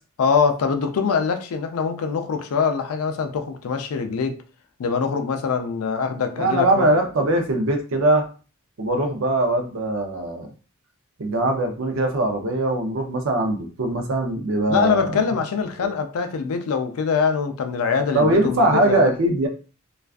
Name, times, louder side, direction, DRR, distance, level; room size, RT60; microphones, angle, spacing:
voice 1, 0.2-4.3 4.8-6.9 14.7-19.1, left 5 dB, 70° left, 0.4 m, -23 dB
voice 2, 6.4-8.3 8.8-10.5 11.2-15.2 15.8-15.9 18.1-19.5, right 1 dB, 60° right, 0.5 m, -21 dB
2.4 x 2.2 x 2.4 m
head